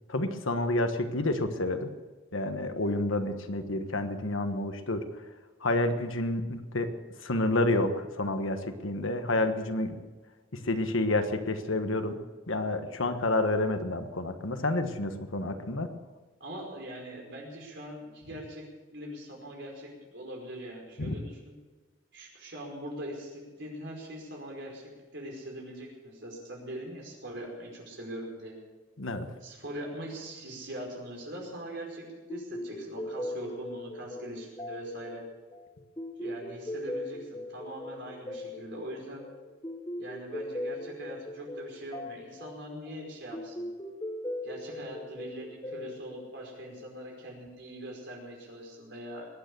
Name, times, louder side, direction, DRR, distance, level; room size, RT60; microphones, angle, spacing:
voice 1, 0.1-1.9 2.3-5.0 5.6-6.9 7.2-10.0 10.6-12.2 12.5-15.9 21.0-21.2 29.0-29.3, left 2 dB, 80° left, 8 dB, 1.4 m, -29 dB
voice 2, 16.4-18.6 18.9-21.6 22.1-28.6 29.4-35.2 36.2-39.2 40.0-43.7 44.4-49.3, right 1 dB, 60° right, -1 dB, 5.1 m, -42 dB
sound 1, 32.3-47.1, left 1 dB, 20° left, 1.0 m, -40 dB
22.0 x 9.3 x 6.9 m, 1.3 s
head